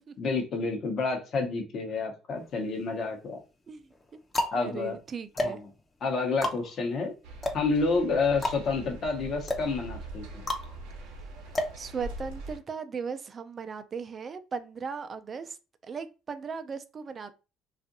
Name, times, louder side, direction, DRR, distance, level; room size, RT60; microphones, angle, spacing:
voice 1, 0.2-3.4 4.5-4.9 5.4-5.6 6.0-7.1 7.5-10.4, left 4 dB, 55° left, 0.8 m, -29 dB
sound 1, 2.4-3.1 3.8-12.5, left 1 dB, 25° left, 0.6 m, -34 dB
voice 2, 4.5-5.6 6.1-6.2 11.6-15.6 15.8-17.4, right 5 dB, 40° right, 0.3 m, -37 dB
sound 2, 7.2-12.6, right 2 dB, 80° right, 0.6 m, -42 dB
2.5 x 2.4 x 2.5 m
hypercardioid pair, 70°, 0 cm